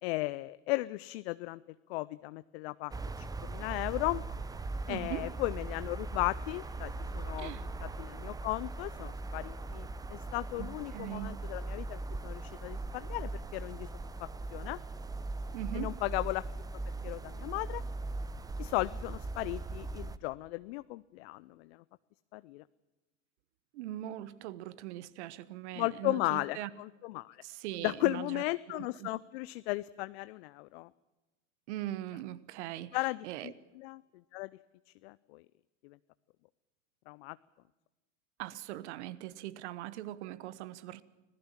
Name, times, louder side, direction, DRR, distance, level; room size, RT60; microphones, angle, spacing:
voice 1, 0.0-1.6 1.9-4.2 4.9-7.5 7.8-13.9 14.2-14.8 15.7-16.5 17.0-17.8 18.6-21.8 22.3-22.6 25.8-27.4 27.8-30.9 32.9-34.0 34.3-34.5 35.0-35.4 35.8-36.0 37.1-37.4, left 21 dB, 55° left, 16 dB, 0.6 m, -36 dB
sound 1, 2.9-20.2, right 2 dB, 10° right, 0.7 m, -40 dB
voice 2, 4.9-5.3 7.4-7.6 10.6-11.4 15.5-15.9 23.7-26.7 27.4-28.4 28.7-29.1 31.7-33.0 33.2-33.5 38.4-41.0, right 14 dB, 60° right, 18 dB, 1.3 m, -41 dB
25.5 x 16.5 x 7.4 m, 1.1 s
hypercardioid pair, 90°, 38 cm